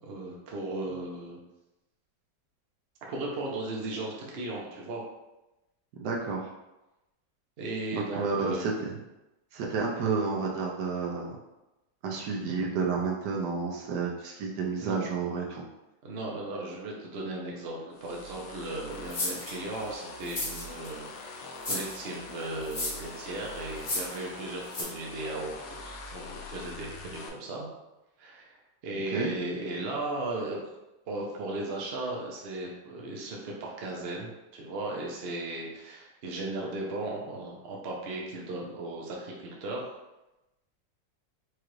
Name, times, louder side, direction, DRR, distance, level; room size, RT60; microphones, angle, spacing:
voice 1, 0.0-1.4 3.1-5.0 7.6-8.6 14.8-15.0 16.0-21.1 21.7-27.7 28.2-28.5 28.8-30.6 31.1-39.8, right 2 dB, 55° right, -2 dB, 0.7 m, -36 dB
voice 2, 6.0-6.5 7.9-9.0 9.5-11.4 12.0-15.6 29.1-29.3, right 4 dB, 75° right, -1 dB, 1.1 m, -30 dB
sound 1, 17.9-27.3, left 2 dB, 70° left, 0.8 m, -44 dB
sound 2, 19.1-19.5 20.2-20.9 21.6-22.0 22.6-23.1 23.8-24.2 24.7-24.8, left 2 dB, 35° left, 1.1 m, -32 dB
4.7 x 2.4 x 3.0 m, 0.98 s
omnidirectional pair, 2.0 m